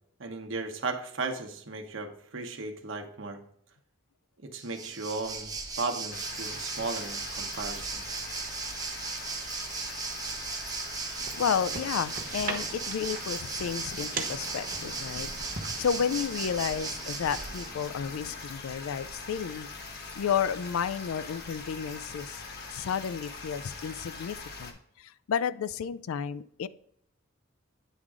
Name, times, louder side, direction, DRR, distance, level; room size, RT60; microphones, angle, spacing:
voice 1, 0.2-3.4 4.4-8.0, right 3 dB, 65° right, 4 dB, 1.0 m, -36 dB
Waves surf, 4.6-17.9, right 4 dB, 20° right, 0.7 m, -37 dB
sound 1, 6.1-24.7, left 3 dB, 55° left, 1.0 m, -42 dB
sound 2, 11.2-18.3, right 4 dB, 45° right, 1.1 m, -42 dB
voice 2, 11.4-15.3 15.8-19.7 20.2-22.4 22.7-26.7, left 7 dB, 85° left, 16 dB, 0.4 m, -32 dB
9.1 x 3.7 x 4.8 m, 0.70 s
head